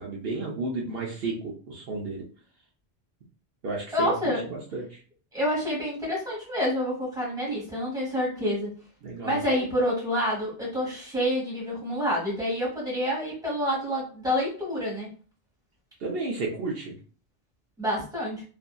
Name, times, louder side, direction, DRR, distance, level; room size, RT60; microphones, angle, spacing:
voice 1, 0.0-2.2 3.6-4.1 4.4-5.0 9.0-9.4 16.0-17.0, right 3 dB, 65° right, -2 dB, 0.8 m, -32 dB
voice 2, 3.9-4.4 5.3-8.7 9.2-15.1 17.8-18.4, equal, 5° right, -5 dB, 1.1 m, -28 dB
2.6 x 2.6 x 2.3 m, 0.39 s
omnidirectional pair, 1.1 m